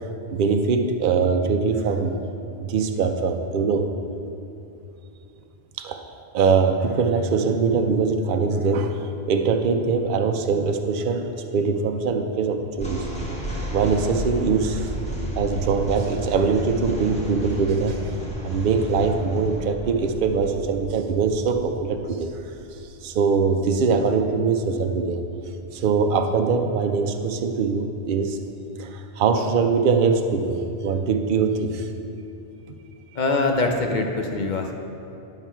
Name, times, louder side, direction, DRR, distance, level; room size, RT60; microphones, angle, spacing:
voice 1, 0.3-2.1 2.6-3.9 5.8-6.0 6.3-11.3 11.5-13.0 13.7-14.9 15.4-18.2 18.4-22.3 23.0-25.2 25.7-28.4 28.8-31.9, right 5 dB, 55° right, 6 dB, 0.7 m, -22 dB
sound 1, 12.7-24.0, right 1 dB, 5° left, 1.4 m, -33 dB
voice 2, 33.1-34.7, left 3 dB, 45° left, 3 dB, 0.8 m, -23 dB
11.0 x 5.8 x 4.5 m, 2.7 s
omnidirectional pair, 1.2 m